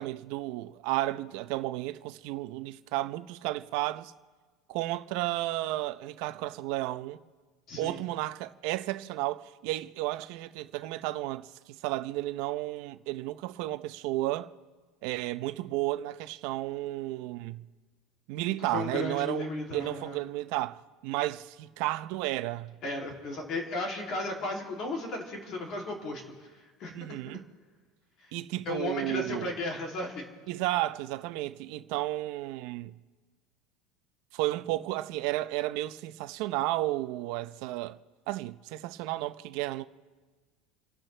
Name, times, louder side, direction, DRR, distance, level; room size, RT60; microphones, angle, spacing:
voice 1, 0.0-4.1 4.7-7.2 7.8-14.5 15.0-17.6 18.3-22.8 26.9-27.4 28.3-29.5 30.5-32.9 34.3-38.0 38.3-39.9, right 16 dB, 55° right, 0.6 m, -33 dB
voice 2, 7.7-8.0 18.7-20.2 22.8-26.5 26.8-27.2 28.7-30.2, left 2 dB, 35° left, 2.8 m, -35 dB
29.5 x 12.0 x 3.3 m
cardioid pair, 170°, 0 cm